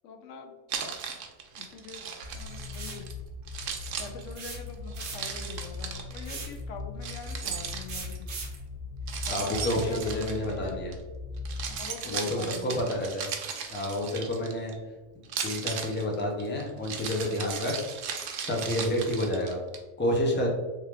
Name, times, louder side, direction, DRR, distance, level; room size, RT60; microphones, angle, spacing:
voice 1, 0.0-0.5 1.5-2.0 2.3-3.1 4.0-8.3 9.3-10.8 11.7-12.9, left 5 dB, 90° left, 5 dB, 1.0 m, -43 dB
Keys jangling, 0.7-3.1 3.5-6.2 7.0-8.2 9.1-10.9 11.4-14.7 15.2-19.8, right 7 dB, 85° right, 0.9 m, -37 dB
sound 1, 2.2-11.8, left 3 dB, 35° left, 0.9 m, -40 dB
sound 2, 2.7-3.1 4.4-5.4 6.2-6.6 7.9-8.6, right 5 dB, 50° right, 0.8 m, -39 dB
voice 2, 9.3-10.9 12.0-13.3 13.7-14.7 15.4-17.7 18.4-19.6 20.0-20.5, left 1 dB, 15° left, 0 dB, 0.5 m, -29 dB
3.3 x 3.3 x 3.2 m, 1.2 s
omnidirectional pair, 1.3 m